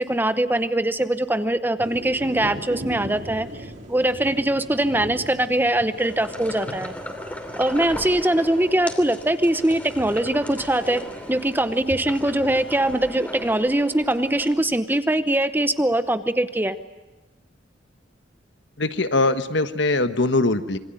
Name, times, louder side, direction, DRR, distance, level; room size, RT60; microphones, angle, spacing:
voice 1, 0.0-3.5 3.9-6.9 7.6-11.0 11.3-16.7, right 1 dB, 10° right, 11 dB, 0.9 m, -22 dB
sound 1, 1.8-13.0, equal, 40° right, 3.7 m, -40 dB
sound 2, 6.0-14.5, left 1 dB, 10° left, 2.8 m, -37 dB
voice 2, 18.8-20.8, left 2 dB, 65° left, 10 dB, 1.4 m, -21 dB
26.5 x 24.0 x 9.2 m, 1.1 s
head